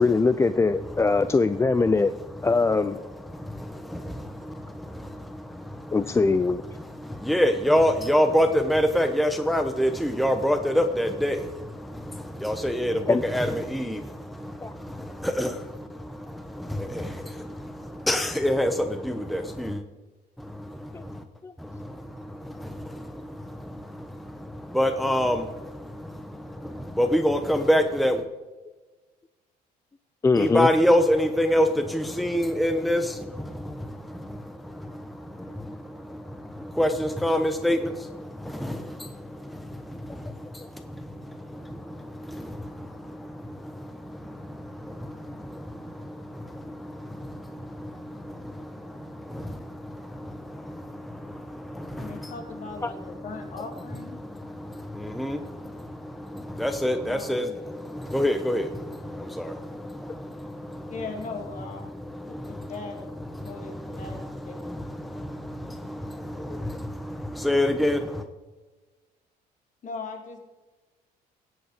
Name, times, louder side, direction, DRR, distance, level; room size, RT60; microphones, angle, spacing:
voice 1, 0.0-2.1 2.4-3.0 5.9-6.6 13.1-13.2 14.6-14.7 20.9-21.0 21.4-21.5 30.2-30.7 52.8-52.9 66.5-66.6, left 4 dB, 15° left, 12 dB, 0.4 m, -22 dB
voice 2, 3.0-6.4 6.6-19.8 20.4-21.2 21.6-28.2 30.4-68.2, equal, ahead, 7 dB, 0.9 m, -28 dB
voice 3, 52.0-54.2 57.1-57.5 60.9-61.8 62.5-63.1 63.4-64.2 64.4-64.5 69.8-70.4, left 4 dB, 50° left, 3 dB, 2.8 m, -38 dB
17.5 x 7.8 x 5.0 m, 1.2 s
cardioid pair, 110°, 17 cm